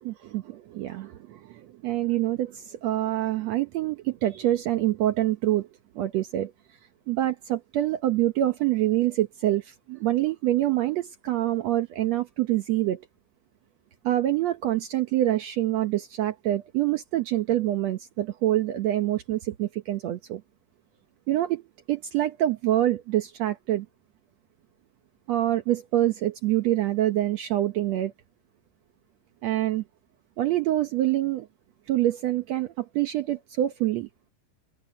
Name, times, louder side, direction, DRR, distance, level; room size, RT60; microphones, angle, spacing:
voice 1, 0.0-5.7 5.9-6.5 7.1-13.0 14.0-20.4 21.3-21.6 21.9-23.9 25.3-28.1 29.4-29.8 30.4-31.5 31.9-34.1, right 14 dB, 85° right, 1.5 m, -26 dB
omnidirectional pair, 4.3 m